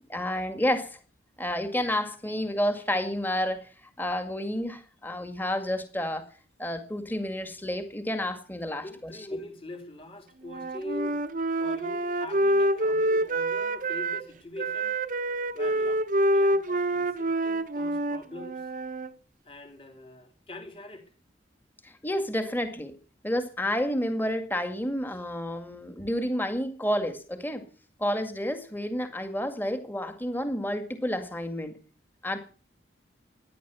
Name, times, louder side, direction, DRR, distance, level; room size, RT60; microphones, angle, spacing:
voice 1, 0.1-1.0 1.4-3.7 4.0-6.3 6.6-9.1 21.8-23.0 23.2-27.7 28.0-31.7 32.2-32.4, left 1 dB, 10° left, 2.1 m, -30 dB
voice 2, 8.8-11.2 11.6-15.0 15.5-16.0 16.3-18.7 19.4-21.1 26.0-26.1, left 1 dB, 30° left, 3.2 m, -42 dB
Wind instrument woodwind instrument, 10.4-14.2 14.6-19.1, right 1 dB, 45° right, 0.9 m, -27 dB
16.0 x 10.5 x 7.0 m
head